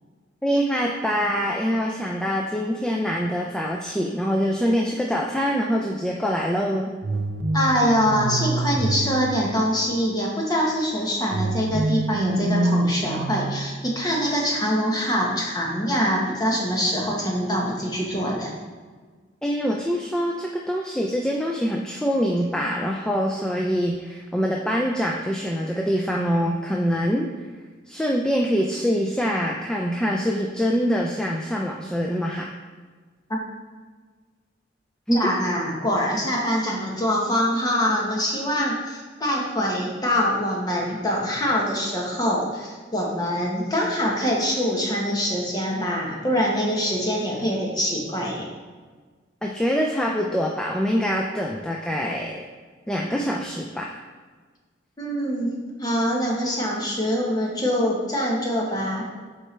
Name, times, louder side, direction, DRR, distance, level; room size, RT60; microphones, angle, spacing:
voice 1, 0.4-6.9 19.4-27.3 27.9-32.5 35.1-35.3 49.4-52.5 52.9-53.9, equal, 5° left, -1 dB, 0.4 m, -24 dB
sound 1, 7.0-10.2 11.3-14.2, right 2 dB, 65° right, 0.5 m, -27 dB
voice 2, 7.5-18.5 35.1-48.5 55.0-59.1, equal, 20° left, -2 dB, 1.2 m, -24 dB
7.9 x 4.5 x 3.3 m, 1.4 s
head